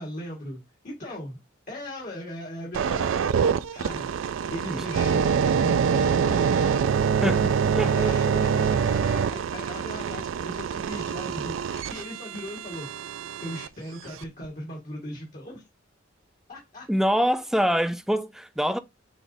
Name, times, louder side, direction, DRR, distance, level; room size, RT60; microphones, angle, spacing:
voice 1, 0.0-1.4 1.7-3.2 3.7-4.1 4.5-6.8 7.8-12.9 13.4-15.6 16.5-16.8, left 1 dB, 45° left, 1.6 m, -38 dB
sound 1, 2.7-13.7 14.2-14.4, right 7 dB, 75° right, 0.4 m, -25 dB
voice 2, 7.2-8.4 16.9-18.8, equal, ahead, 0.4 m, -25 dB
5.9 x 3.4 x 2.6 m
head